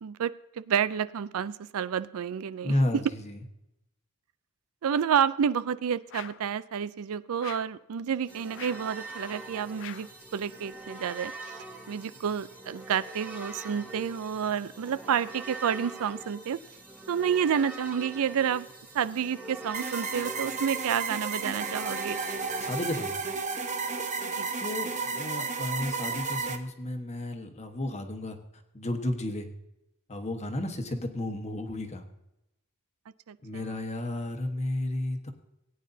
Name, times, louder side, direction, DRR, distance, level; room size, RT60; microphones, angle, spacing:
voice 1, 0.0-2.7 4.8-11.6 11.9-16.6 17.1-18.7 18.9-22.2 24.4-24.5 33.3-33.4, right 8 dB, 70° right, 16 dB, 0.4 m, -29 dB
voice 2, 2.6-3.4 22.6-23.2 24.6-28.4 28.7-29.5 30.1-32.0 33.4-35.3, left 1 dB, 30° left, 5 dB, 1.3 m, -32 dB
sound 1, 6.1-6.5 7.4-7.8 8.5-8.9 9.8-10.2, left 11 dB, 60° left, 0.5 m, -44 dB
sound 2, 8.3-23.1, right 3 dB, 10° right, 1.9 m, -43 dB
sound 3, 19.7-26.6, right 4 dB, 35° right, 1.0 m, -33 dB
18.5 x 9.4 x 2.7 m, 0.89 s
head